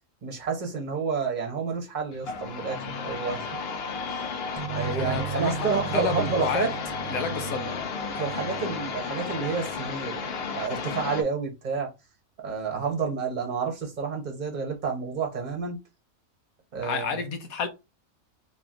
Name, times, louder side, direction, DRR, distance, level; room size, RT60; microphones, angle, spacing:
voice 1, 0.2-3.5 4.1-4.3 4.7-6.7 8.2-11.9 12.4-15.8 16.7-17.2, right 5 dB, 35° right, 1.1 m, -30 dB
sound 1, 2.1-11.2, left 5 dB, 55° left, 0.8 m, -33 dB
sound 2, 4.6-10.1, right 9 dB, 75° right, 0.4 m, -37 dB
voice 2, 4.9-6.7 7.1-7.8 16.8-17.7, left 5 dB, 80° left, 1.3 m, -30 dB
3.2 x 3.0 x 3.6 m
omnidirectional pair, 1.5 m